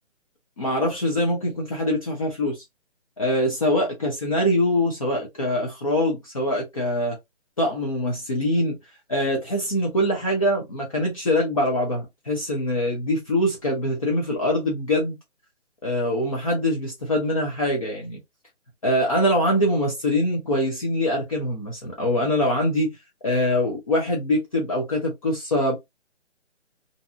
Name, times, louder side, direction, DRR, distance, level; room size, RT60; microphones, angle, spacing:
voice 1, 0.6-2.6 3.2-7.2 7.6-8.8 9.1-15.2 15.8-18.2 18.8-22.9 23.2-25.7, left 1 dB, 30° left, 0.6 m, -23 dB
2.6 x 2.2 x 2.5 m
hypercardioid pair, 165°, 36 cm